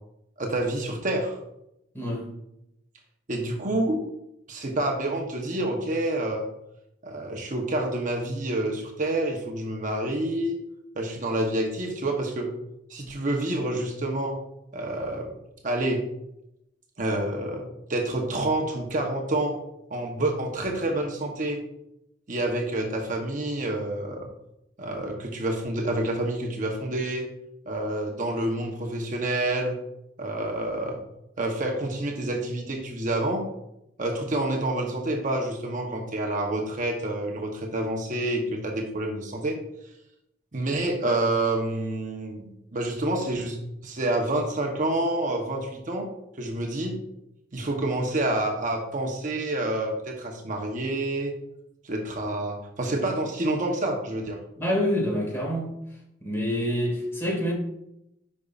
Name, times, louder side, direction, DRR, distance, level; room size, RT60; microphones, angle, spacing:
voice 1, 0.4-1.4 3.3-4.0 4.5-6.5 7.0-10.6 11.0-12.5 12.9-14.4 14.7-15.3 15.6-16.0 17.0-17.6 17.9-19.6 19.9-21.6 22.3-24.3 24.8-27.3 27.7-29.8 30.2-31.0 31.4-33.4 34.0-39.6 40.5-43.6 43.8-46.1 46.4-47.0 47.5-51.3 51.8-54.4, right 1 dB, 45° right, 1 dB, 0.9 m, -28 dB
voice 2, 1.9-2.3 54.6-55.7 56.2-57.5, equal, 15° left, -3 dB, 2.0 m, -26 dB
10.5 x 5.4 x 2.4 m, 0.84 s
head